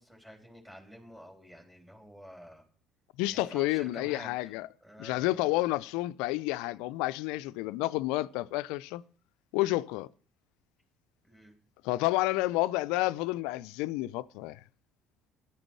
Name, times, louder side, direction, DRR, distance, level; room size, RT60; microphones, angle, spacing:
voice 1, 0.0-2.6 3.3-4.5 4.8-5.5 11.2-11.5, equal, 10° right, 3.7 m, -49 dB
voice 2, 3.2-4.7 5.0-9.0 9.5-10.1 11.8-14.6, left 18 dB, 70° left, 0.5 m, -30 dB
12.0 x 8.9 x 6.2 m
hypercardioid pair, 55°, 0 cm